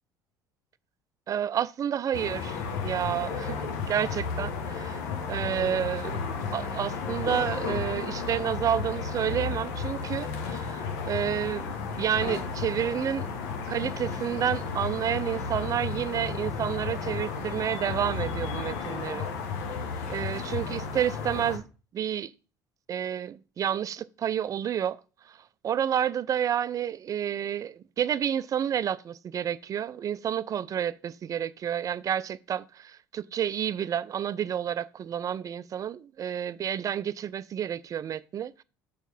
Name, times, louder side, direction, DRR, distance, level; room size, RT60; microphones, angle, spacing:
voice 1, 1.3-13.3 13.7-19.3 20.1-21.6 21.9-22.3 22.9-25.0 25.3-25.4 25.6-38.6, right 9 dB, 35° right, 0.4 m, -30 dB
sound 1, 2.1-21.6, left 5 dB, 70° left, 1.1 m, -33 dB
7.0 x 4.5 x 5.3 m
figure-of-eight pair, 60°, 10 cm